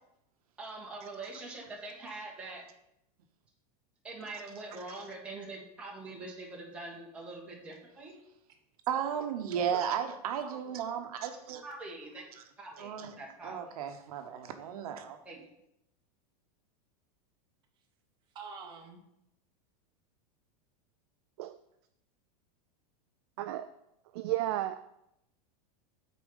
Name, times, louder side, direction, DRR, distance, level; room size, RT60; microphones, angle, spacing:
voice 1, 0.6-2.6 4.0-8.2 11.2-11.3 11.6-12.2 12.6-13.7 15.2-15.4, right 2 dB, 5° right, -4 dB, 1.5 m, -44 dB
voice 2, 8.9-11.6 12.8-13.1 13.4-15.2, right 8 dB, 75° right, 6 dB, 1.0 m, -34 dB
voice 3, 10.4-10.8 18.3-19.0, right 5 dB, 25° right, 1 dB, 1.2 m, -46 dB
voice 4, 24.1-24.8, right 14 dB, 45° right, 9 dB, 0.4 m, -33 dB
8.6 x 4.3 x 5.5 m, 0.80 s
supercardioid pair, 175°, 19 cm